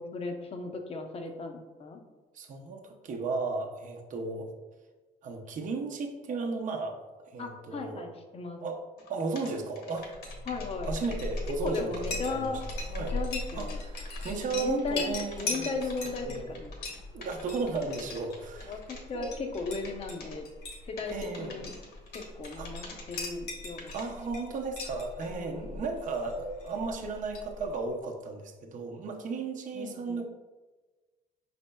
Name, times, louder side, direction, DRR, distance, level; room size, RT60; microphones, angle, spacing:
voice 1, 0.0-2.0 7.4-8.6 10.5-10.9 11.6-12.6 12.9-13.8 14.5-16.7 17.6-17.8 18.7-20.5 20.8-21.7 22.1-23.9 25.3-25.8 29.7-30.2, left 3 dB, 35° left, 5 dB, 0.6 m, -36 dB
voice 2, 2.3-4.5 5.2-7.0 7.2-8.0 8.6-8.8 9.1-10.1 10.8-12.5 12.9-13.2 13.5-15.8 16.3-16.6 17.1-18.8 19.1-19.4 21.1-21.7 22.6-22.7 23.9-30.2, right 4 dB, 50° right, 2 dB, 0.7 m, -35 dB
sound 1, 9.0-9.1 9.4-19.0 19.6-20.4 21.0-23.2 23.8-24.0, left 3 dB, 70° left, 1.1 m, -48 dB
Chink clink, 10.1-27.9, left 2 dB, 90° left, 1.4 m, -40 dB
5.3 x 4.3 x 2.2 m, 1.2 s
cardioid pair, 110°, 17 cm